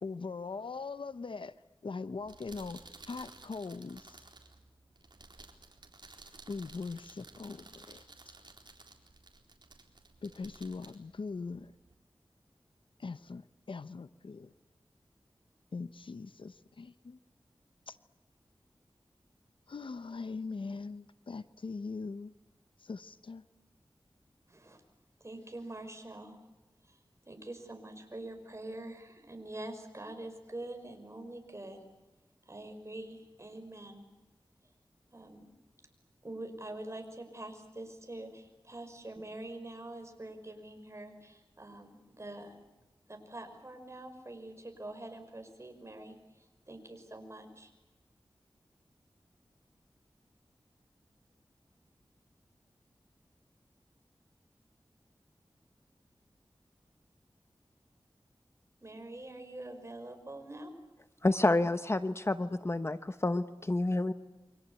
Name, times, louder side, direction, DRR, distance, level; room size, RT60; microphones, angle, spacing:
voice 1, 0.0-1.5 1.8-4.2 6.5-8.0 10.2-11.7 13.0-14.5 15.7-17.2 17.9-18.0 19.7-22.3 22.8-23.4, left 4 dB, 75° left, 0.9 m, -41 dB
sound 1, 2.1-11.9, right 3 dB, 60° right, 4.0 m, -55 dB
voice 2, 24.5-24.8 25.2-26.4 26.8-27.0 27.2-31.8 32.5-34.0 35.1-35.5 36.2-42.5 43.1-47.7 58.8-60.7, right 1 dB, 35° right, 5.9 m, -45 dB
voice 3, 61.2-64.1, left 2 dB, 30° left, 0.9 m, -29 dB
28.5 x 24.5 x 8.4 m
wide cardioid pair, 85°, 9 cm